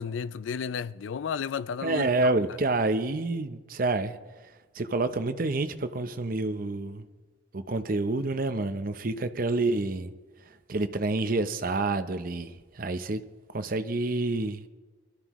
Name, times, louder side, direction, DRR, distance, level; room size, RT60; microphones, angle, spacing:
voice 1, 0.0-2.3, left 6 dB, 90° left, 0.4 m, -33 dB
voice 2, 1.8-4.2 4.7-7.1 7.5-10.1 10.7-13.2 13.5-14.7, right 2 dB, 50° right, 0.7 m, -28 dB
23.0 x 13.0 x 3.1 m
head